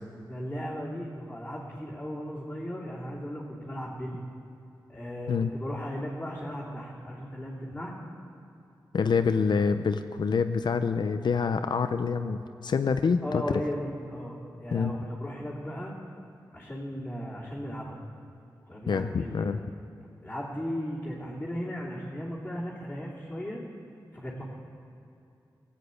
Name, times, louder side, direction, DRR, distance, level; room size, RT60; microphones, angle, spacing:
voice 1, 0.2-4.2 4.9-7.9 13.2-15.9 16.5-18.0 18.7-19.6 20.2-23.6 24.1-24.4, equal, 10° left, -8 dB, 2.7 m, -36 dB
voice 2, 8.9-13.4 14.7-14.9 18.9-19.6, left 5 dB, 70° left, 8 dB, 0.6 m, -26 dB
18.0 x 9.1 x 8.2 m, 2.7 s
wide cardioid pair, 100°, 8 cm